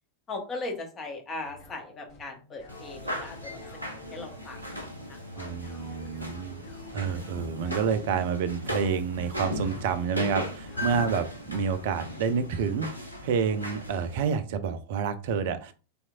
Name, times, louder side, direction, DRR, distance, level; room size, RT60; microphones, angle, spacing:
voice 1, 0.3-3.6 4.1-5.5 7.1-7.2, left 2 dB, 25° left, 3 dB, 1.0 m, -39 dB
sound 1, 1.4-12.9, left 3 dB, 40° left, 1.3 m, -51 dB
sound 2, 2.7-14.3, left 1 dB, 90° left, 0.8 m, -37 dB
voice 2, 5.4-6.6 6.9-15.7, right 6 dB, 50° right, 11 dB, 0.4 m, -29 dB
3.4 x 3.0 x 2.4 m, 0.34 s
figure-of-eight pair, 90°, 0 cm